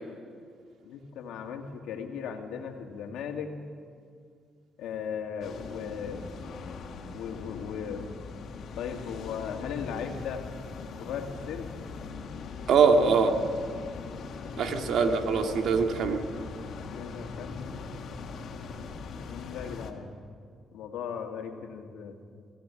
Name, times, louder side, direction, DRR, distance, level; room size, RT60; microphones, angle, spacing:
voice 1, 0.9-3.5 4.8-6.2 7.1-8.1 8.8-10.5 11.0-11.7 14.4-15.0 16.9-17.8 19.1-20.1 20.7-22.2, left 7 dB, 85° left, 4 dB, 2.3 m, -37 dB
sound 1, 5.4-19.9, left 4 dB, 70° left, 2.3 m, -41 dB
voice 2, 12.7-13.4 14.6-16.3, right 5 dB, 70° right, 4 dB, 2.2 m, -23 dB
20.0 x 16.5 x 10.0 m, 2.2 s
cardioid pair, 90°, 0 cm